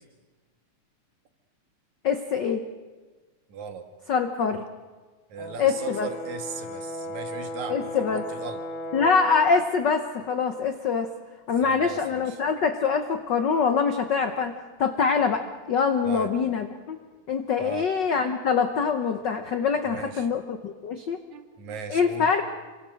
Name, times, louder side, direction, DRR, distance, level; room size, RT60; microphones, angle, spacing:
voice 1, 2.0-2.6 4.1-4.6 5.6-6.1 7.7-8.2 8.9-11.1 11.5-14.5 14.8-17.0 17.3-21.2 21.9-22.4, left 5 dB, 75° left, 7 dB, 1.0 m, -24 dB
voice 2, 3.5-3.9 5.3-8.6 11.5-12.4 16.0-16.3 17.6-17.9 19.9-20.3 21.3-22.3, right 6 dB, 75° right, 6 dB, 3.0 m, -37 dB
Brass instrument, 5.4-9.6, left 1 dB, 60° left, 3.1 m, -36 dB
27.5 x 23.5 x 6.4 m, 1.3 s
omnidirectional pair, 3.3 m